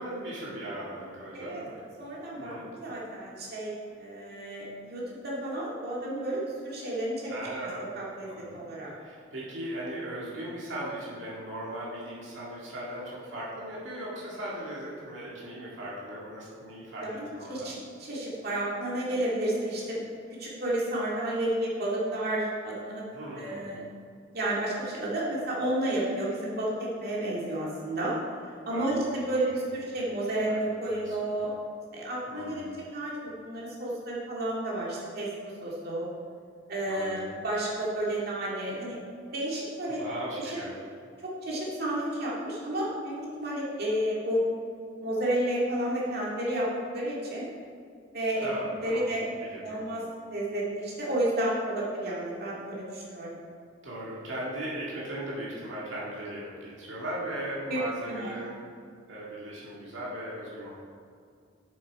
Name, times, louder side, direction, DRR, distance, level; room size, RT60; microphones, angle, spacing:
voice 1, 0.0-1.8 2.4-2.7 7.3-7.9 8.3-8.6 9.0-17.0 17.3-17.7 23.1-23.7 28.7-29.0 29.8-29.9 30.5-31.3 32.3-32.7 36.9-37.3 39.9-40.7 48.4-49.1 49.4-49.8 53.8-58.6 59.1-60.7, right 1 dB, 80° right, -7 dB, 1.9 m, -38 dB
voice 2, 2.0-7.3 7.8-8.9 17.0-17.7 18.0-20.0 20.4-23.0 23.3-23.8 24.3-28.1 28.7-31.5 31.9-35.3 35.6-36.1 36.7-39.0 39.3-40.0 40.4-40.5 41.2-43.1 43.4-44.4 45.0-46.7 46.9-47.5 48.1-48.5 48.8-49.2 49.6-50.0 50.3-53.3 57.7-57.8 58.1-58.3, right 1 dB, 55° right, -6 dB, 2.2 m, -31 dB
7.4 x 7.3 x 4.7 m, 2.3 s
head